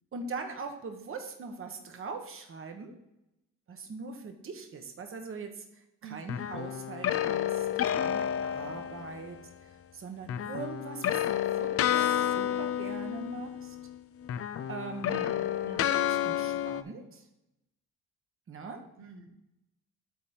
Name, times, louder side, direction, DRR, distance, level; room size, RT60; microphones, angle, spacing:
voice 1, 0.1-2.9 3.7-13.8 14.7-15.2 16.0-17.3 18.5-18.8, right 4 dB, 45° right, 5 dB, 1.3 m, -42 dB
voice 2, 6.0-6.5 15.1-16.0 19.0-19.4, right 2 dB, 80° right, 3 dB, 1.1 m, -46 dB
sound 1, 6.3-9.4 10.3-14.0 14.2-16.8, left 10 dB, 50° left, 0.5 m, -30 dB
8.4 x 4.0 x 5.9 m, 0.88 s
cardioid pair, 90°, 30 cm